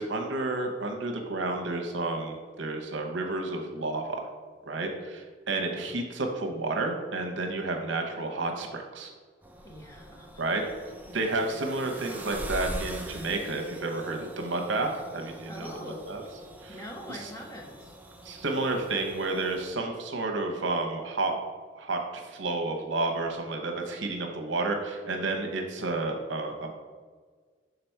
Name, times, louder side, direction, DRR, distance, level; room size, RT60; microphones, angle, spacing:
voice 1, 0.0-4.3 4.6-4.9 5.5-9.1 10.4-10.6 11.1-15.7 16.0-16.2 16.6-16.8 17.1-17.3 18.2-21.4 21.7-26.8, right 2 dB, 70° right, 2 dB, 0.9 m, -31 dB
sound 1, 9.4-19.7, right 1 dB, 10° right, 0.5 m, -42 dB
voice 2, 9.6-10.6 15.5-16.1 16.7-18.0, left 1 dB, 15° left, 0 dB, 0.9 m, -43 dB
6.8 x 4.0 x 4.5 m, 1.5 s
head